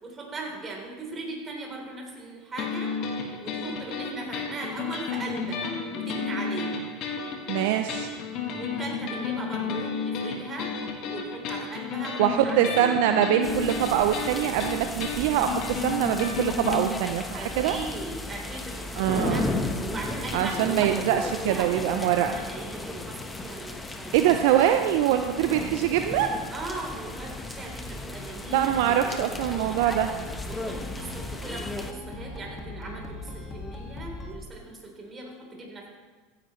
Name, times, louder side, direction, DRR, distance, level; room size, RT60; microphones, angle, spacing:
voice 1, 0.0-2.9 3.4-6.8 8.5-10.7 11.0-12.7 17.3-21.0 21.2-23.2 23.4-24.3 26.5-28.9 29.7-30.0 30.4-35.9, right 2 dB, 25° right, -1 dB, 3.6 m, -39 dB
sound 1, 2.6-16.8, left 5 dB, 55° left, 1.7 m, -32 dB
voice 2, 7.5-8.1 12.2-17.8 19.0-19.5 20.3-22.4 24.1-26.3 28.5-30.1, right 11 dB, 70° right, 7 dB, 0.5 m, -24 dB
sound 2, 13.4-31.9, left 2 dB, 15° left, 1.1 m, -35 dB
sound 3, 29.2-34.3, left 2 dB, 30° left, 1.9 m, -40 dB
15.0 x 10.0 x 3.2 m, 1.4 s
hypercardioid pair, 90°, 0 cm